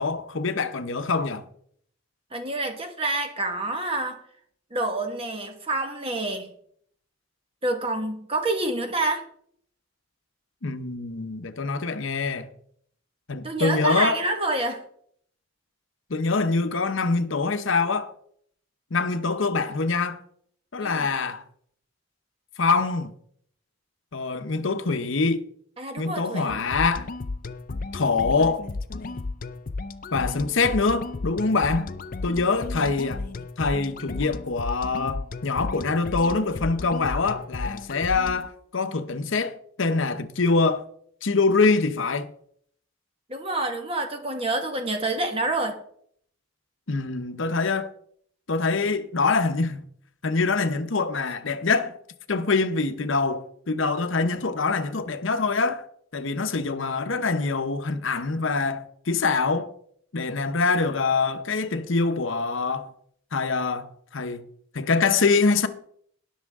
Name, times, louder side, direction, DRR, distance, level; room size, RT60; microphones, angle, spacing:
voice 1, 0.0-1.5 10.6-12.5 13.3-14.2 16.1-18.1 18.9-20.2 20.7-21.4 22.6-23.1 24.1-25.5 26.0-27.1 27.9-28.7 30.1-31.9 32.2-33.3 33.6-40.9 41.2-42.3 46.9-47.9 48.5-49.8 50.2-52.0 52.3-55.9 56.1-59.7 60.1-62.9 63.3-64.4 64.7-65.7, left 4 dB, 65° left, 0.9 m, -24 dB
voice 2, 2.3-4.2 4.7-6.5 7.6-9.2 13.4-14.8 20.8-21.1 25.8-26.6 43.3-45.8, right 2 dB, 25° right, 1.5 m, -27 dB
sound 1, 26.5-38.5, left 3 dB, 40° left, 0.5 m, -34 dB
18.5 x 6.3 x 3.6 m
head